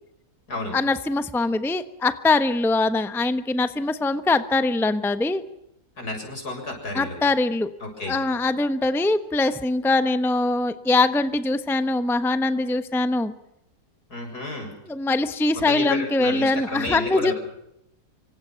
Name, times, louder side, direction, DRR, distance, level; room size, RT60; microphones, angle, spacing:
voice 1, 0.7-5.4 6.9-7.7 8.1-13.3 14.9-17.3, left 2 dB, ahead, 10 dB, 1.0 m, -22 dB
voice 2, 6.0-7.2 7.8-8.2 14.1-14.7 15.7-17.3, left 2 dB, 75° left, 3 dB, 7.9 m, -31 dB
27.0 x 25.0 x 5.9 m, 0.81 s
omnidirectional pair, 1.7 m